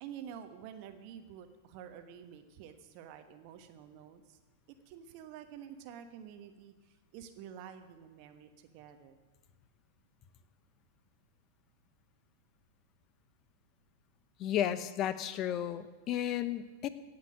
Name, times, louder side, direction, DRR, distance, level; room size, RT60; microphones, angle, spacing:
voice 1, 0.0-4.4 4.9-9.2, right 9 dB, 50° right, 8 dB, 1.2 m, -49 dB
voice 2, 14.4-16.9, left 11 dB, 40° left, 13 dB, 0.9 m, -33 dB
17.5 x 6.0 x 8.8 m, 1.3 s
figure-of-eight pair, 95°, 0 cm